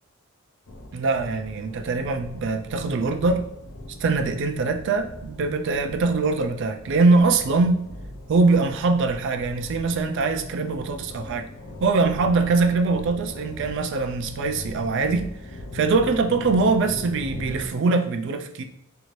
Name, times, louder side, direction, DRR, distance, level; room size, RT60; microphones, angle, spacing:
sound 1, 0.7-17.7, left 1 dB, 55° left, 0.5 m, -40 dB
voice 1, 0.9-3.4 4.0-7.8 8.3-11.5 11.8-15.3 15.7-18.6, right 3 dB, 60° right, 0.3 m, -22 dB
2.8 x 2.5 x 3.1 m
head